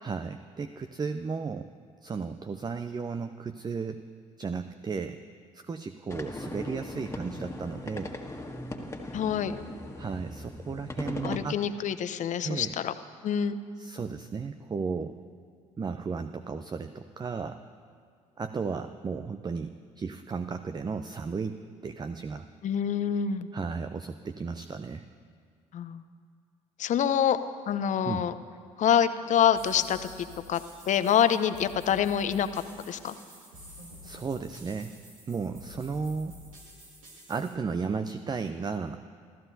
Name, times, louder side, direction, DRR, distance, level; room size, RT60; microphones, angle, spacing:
voice 1, 0.0-1.7 2.0-4.0 4.4-5.2 5.5-8.2 10.0-11.6 12.4-12.7 13.8-15.2 15.8-17.6 18.4-22.5 23.5-25.0 28.0-28.2 34.0-34.9 35.3-36.4 37.3-39.0, right 5 dB, 25° right, 9 dB, 0.6 m, -34 dB
sound 1, 6.1-11.4, left 1 dB, 15° left, 1.8 m, -39 dB
voice 2, 9.1-9.6 11.2-12.9 13.2-13.6 22.6-23.5 25.7-26.0 26.8-27.4 27.7-28.3 28.8-30.1 30.5-30.6 30.8-33.2, left 9 dB, 45° left, 12 dB, 0.8 m, -26 dB
sound 2, 29.5-37.5, left 1 dB, 85° right, 2.2 m, -49 dB
28.5 x 14.0 x 2.8 m, 2.1 s
figure-of-eight pair, 55°, 17 cm